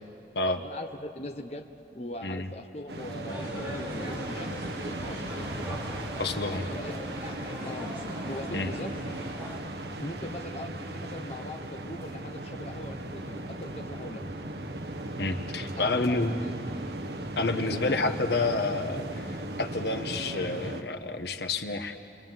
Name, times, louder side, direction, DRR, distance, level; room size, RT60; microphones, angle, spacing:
voice 1, 0.6-5.8 6.6-7.0 7.6-7.9 8.2-8.9 10.0-14.2 15.8-16.5 17.7-18.2, left 1 dB, 35° left, 3 dB, 1.0 m, -41 dB
sound 1, 2.9-20.8, right 1 dB, 70° right, 1.4 m, -37 dB
sound 2, 3.3-9.6, equal, 10° right, 5.0 m, -41 dB
voice 2, 6.2-6.7 8.5-8.7 15.2-16.3 17.4-22.0, left 3 dB, 75° left, 6 dB, 1.3 m, -29 dB
29.5 x 24.0 x 7.5 m, 2.5 s
head